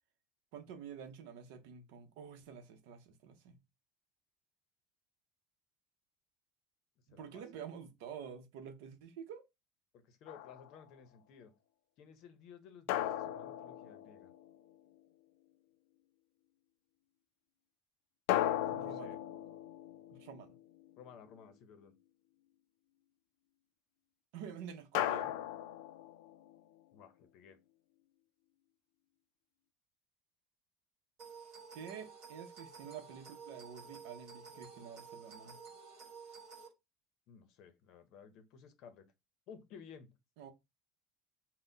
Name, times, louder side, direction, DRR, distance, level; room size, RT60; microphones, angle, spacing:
voice 1, 0.5-3.6 7.1-9.4 18.7-19.2 20.1-20.6 24.3-25.3 31.7-35.6 40.4-40.5, right 7 dB, 75° right, 0.7 m, -49 dB
voice 2, 7.1-7.4 9.9-11.5 12.0-14.3 18.5-19.2 21.0-21.9 26.9-27.6 37.3-39.1 39.5-40.1, left 7 dB, 50° left, 0.7 m, -56 dB
sound 1, 10.3-10.8 12.9-14.7 18.3-20.9 24.9-26.6, left 12 dB, 75° left, 0.4 m, -37 dB
sound 2, 31.2-36.7, right 5 dB, 50° right, 1.6 m, -52 dB
4.1 x 2.1 x 3.9 m
cardioid pair, 165°, 0 cm